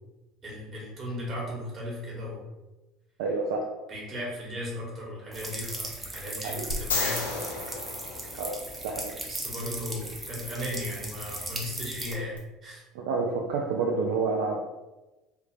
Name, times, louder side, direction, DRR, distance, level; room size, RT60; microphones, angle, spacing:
voice 1, 0.4-2.4 3.9-7.4 9.3-12.3 12.6-12.8, left 1 dB, 40° right, -4 dB, 1.5 m, -36 dB
voice 2, 3.2-3.7 6.4-6.7 8.4-8.6 8.8-9.2 12.9-14.6, right 4 dB, 65° right, 0 dB, 0.3 m, -28 dB
sound 1, 5.3-12.1, right 1 dB, 15° right, 0.8 m, -38 dB
sound 2, 6.7-8.9 12.4-12.5, left 3 dB, 80° left, 0.5 m, -32 dB
3.2 x 2.5 x 3.1 m, 1.1 s
figure-of-eight pair, 65°, 0 cm